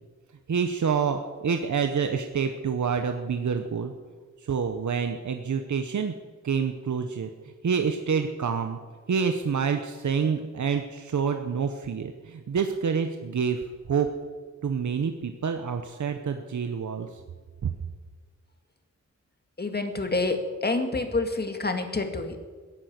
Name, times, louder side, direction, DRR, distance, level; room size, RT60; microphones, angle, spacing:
voice 1, 0.5-3.9 4.4-6.1 6.4-7.3 7.6-8.8 9.1-13.6 13.9-14.1 14.6-17.2 17.6-17.7, right 6 dB, 75° right, 6 dB, 1.1 m, -27 dB
voice 2, 19.6-22.4, left 3 dB, 35° left, 6 dB, 2.1 m, -28 dB
17.0 x 10.5 x 8.1 m, 1.5 s
wide cardioid pair, 80°, 30 cm